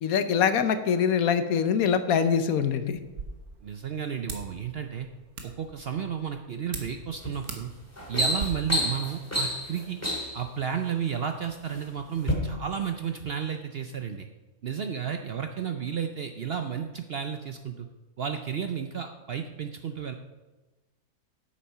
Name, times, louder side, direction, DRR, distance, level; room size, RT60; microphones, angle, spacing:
voice 1, 0.0-3.0, left 7 dB, 75° left, 10 dB, 1.2 m, -24 dB
sound 1, 3.0-8.5, right 4 dB, 80° right, 1.7 m, -43 dB
voice 2, 3.6-5.1 5.4-7.7 8.1-10.0 10.3-14.3 14.6-17.9 18.2-20.2, right 8 dB, 60° right, 6 dB, 0.6 m, -32 dB
sound 2, 7.2-7.4 7.8-10.4 11.3-11.8 12.2-12.3, equal, 10° left, 2.1 m, -29 dB
8.6 x 7.4 x 5.5 m, 1.1 s
omnidirectional pair, 1.6 m